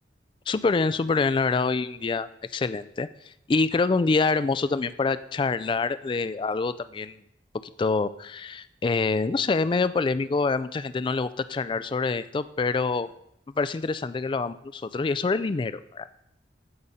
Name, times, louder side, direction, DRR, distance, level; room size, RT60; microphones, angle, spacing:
voice 1, 0.5-7.2 7.8-13.1 13.6-16.1, left 4 dB, 30° left, 15 dB, 0.3 m, -26 dB
15.5 x 5.2 x 4.2 m, 0.78 s
head